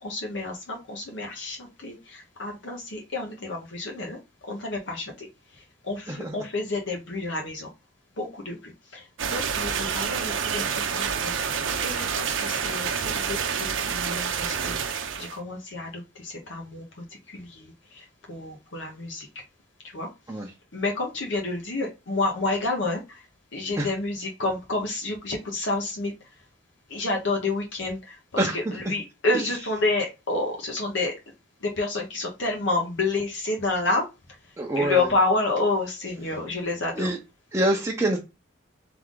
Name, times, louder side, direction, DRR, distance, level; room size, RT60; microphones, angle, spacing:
voice 1, 0.0-5.3 5.5-7.7 8.2-19.3 19.8-20.4 20.7-23.2 23.5-26.1 26.9-31.2 31.6-34.1 34.8-37.1, left 2 dB, 70° left, 1.0 m, -29 dB
sound 1, 9.2-15.4, right 7 dB, 85° right, 0.7 m, -28 dB
voice 2, 34.6-35.0 37.0-37.1 37.5-38.2, right 1 dB, 15° right, 0.7 m, -24 dB
3.7 x 3.5 x 3.7 m
head